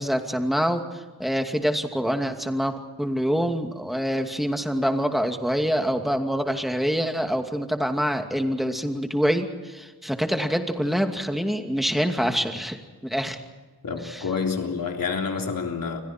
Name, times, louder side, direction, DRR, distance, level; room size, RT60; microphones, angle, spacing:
voice 1, 0.0-13.4 14.0-14.2, equal, ahead, 4 dB, 2.5 m, -26 dB
voice 2, 13.8-16.0, left 5 dB, 75° left, 2 dB, 3.6 m, -28 dB
30.0 x 24.5 x 4.5 m, 1.4 s
wide cardioid pair, 100°, 34 cm